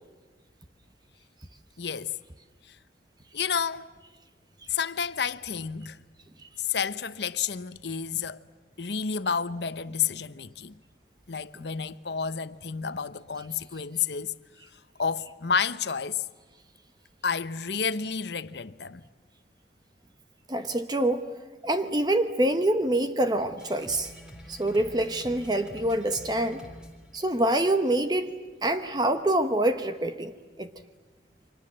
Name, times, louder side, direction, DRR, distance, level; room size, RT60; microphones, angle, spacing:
voice 1, 1.8-2.2 2.7-2.8 3.3-3.9 4.7-6.0 6.6-8.4 8.8-10.8 11.3-14.3 15.0-16.3 17.2-19.0, left 6 dB, 70° left, 0.9 m, -30 dB
voice 2, 20.5-21.3 21.6-24.1 24.5-26.6 27.1-28.3 28.6-30.3 30.6-30.7, right 1 dB, 25° right, 1.0 m, -25 dB
sound 1, 23.6-28.0, equal, 5° right, 3.5 m, -47 dB
29.5 x 24.5 x 7.6 m
head